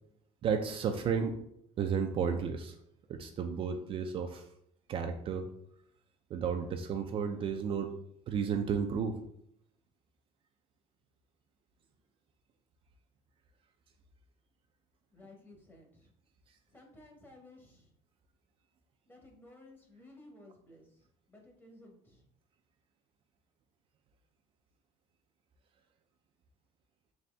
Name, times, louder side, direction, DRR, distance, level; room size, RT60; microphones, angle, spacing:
voice 1, 0.4-1.4 1.8-2.8 3.2-4.4 4.9-5.5 6.3-7.9 8.3-9.2, right 6 dB, 45° right, 5 dB, 0.4 m, -32 dB
voice 2, 15.1-16.1 16.7-17.9 19.1-22.2, left 2 dB, 15° left, 1 dB, 1.0 m, -56 dB
4.1 x 2.7 x 3.3 m, 0.72 s
cardioid pair, 120°, 13 cm